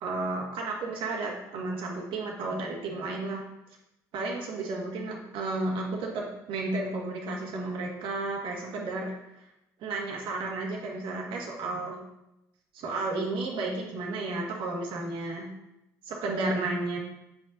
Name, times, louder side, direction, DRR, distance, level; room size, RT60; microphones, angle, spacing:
voice 1, 0.0-3.4 4.1-9.1 9.8-12.0 12.7-15.5 16.1-17.0, right 2 dB, 65° right, -1 dB, 1.8 m, -32 dB
7.9 x 5.5 x 2.7 m, 0.88 s
hypercardioid pair, 60°, 9 cm